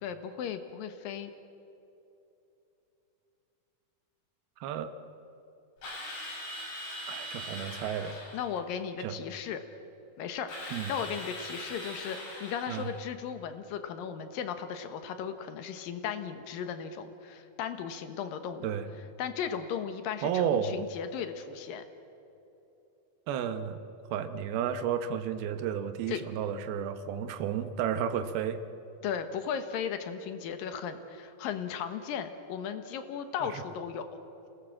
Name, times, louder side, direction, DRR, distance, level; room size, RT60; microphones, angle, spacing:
voice 1, 0.0-1.3 8.3-9.6 10.2-18.7 19.2-21.8 26.1-26.2 29.0-34.0, left 7 dB, 70° left, 8 dB, 2.9 m, -36 dB
voice 2, 4.6-4.9 7.1-8.2 9.0-9.2 10.7-10.9 12.7-12.9 18.6-18.9 20.2-20.9 23.3-23.8 24.1-28.6 33.4-33.6, right 8 dB, 90° right, 9 dB, 3.0 m, -32 dB
Drill, 5.8-8.5 10.5-13.0, left 1 dB, 90° left, 8.3 m, -41 dB
28.0 x 18.5 x 7.5 m, 2.9 s
omnidirectional pair, 4.3 m